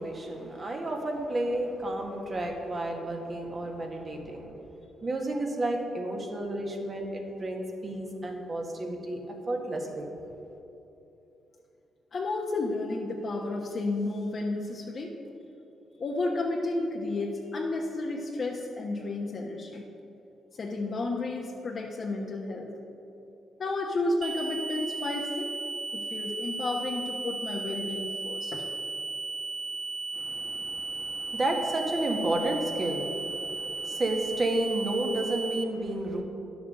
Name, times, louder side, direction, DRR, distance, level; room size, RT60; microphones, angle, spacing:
voice 1, 0.0-4.6 5.0-10.2 30.1-36.2, right 1 dB, 35° right, 1 dB, 1.8 m, -31 dB
voice 2, 12.1-15.1 16.0-19.8 20.6-22.7 23.6-25.5 25.9-28.6, left 2 dB, 50° left, -2 dB, 1.2 m, -32 dB
sound 1, 24.2-35.6, right 3 dB, 55° right, 0.6 m, -35 dB
10.5 x 7.1 x 6.6 m, 2.8 s
cardioid pair, 75°, 0 cm